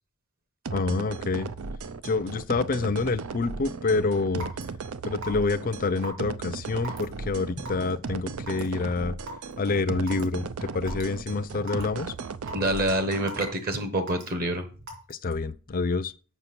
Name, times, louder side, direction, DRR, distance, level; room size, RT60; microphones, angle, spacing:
voice 1, 0.7-1.5 2.0-4.5 5.1-9.1 9.6-10.5 10.7-12.1 15.1-16.1, left 3 dB, 40° left, 0.5 m, -27 dB
sound 1, 0.7-13.5, right 4 dB, 80° right, 0.5 m, -36 dB
Raindrop / Water tap faucet / Drip, 4.4-4.6 5.2-5.5 6.0-6.2 6.8-7.0 7.7-7.9 8.5-8.7 9.3-9.4 10.1-10.2 10.9-11.0 11.7-11.8 12.5-12.7 13.3-13.6 14.1-14.3 14.9-15.1, right 1 dB, 60° right, 3.0 m, -37 dB
voice 2, 12.5-14.7, right 1 dB, 45° right, 1.0 m, -27 dB
7.1 x 5.9 x 6.0 m
head